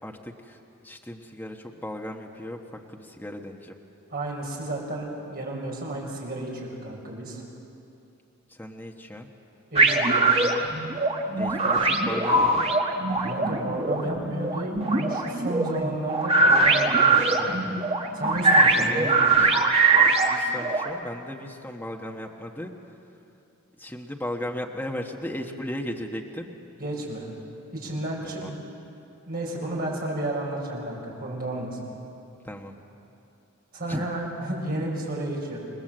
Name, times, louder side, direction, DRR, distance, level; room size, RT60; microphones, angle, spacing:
voice 1, 0.0-2.6 2.9-3.7 8.5-9.3 11.4-12.8 18.8-19.8 20.3-22.7 23.8-26.5 28.2-28.5 32.4-32.7 33.9-34.1, left 1 dB, 10° left, 1 dB, 1.2 m, -36 dB
voice 2, 4.1-7.4 9.7-10.3 13.2-17.7 18.1-19.2 26.8-27.3 27.7-28.6 29.3-31.9 33.7-35.6, right 1 dB, 45° right, -2 dB, 5.9 m, -32 dB
sound 1, 9.8-20.9, right 3 dB, 25° right, 1.6 m, -21 dB
29.0 x 20.0 x 7.8 m, 2.7 s
head